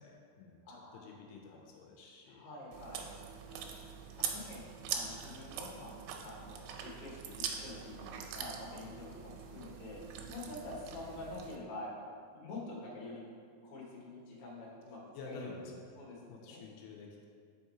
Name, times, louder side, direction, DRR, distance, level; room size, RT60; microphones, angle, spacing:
voice 1, 0.0-2.5 3.5-3.8 15.1-15.8 16.3-17.3, left 3 dB, 85° left, 0 dB, 2.6 m, -51 dB
voice 2, 0.7-1.1 1.4-1.6 2.3-3.1 4.2-4.6 4.9-5.9 6.2-10.0 10.3-11.9 12.3-13.2 13.6-15.0 15.3-15.5 16.0-16.6, left 2 dB, 65° left, -4 dB, 2.0 m, -46 dB
Chewing mastication, 2.7-11.6, right 7 dB, 90° right, 2.8 m, -43 dB
5.3 x 4.7 x 4.2 m, 2.1 s
omnidirectional pair, 4.8 m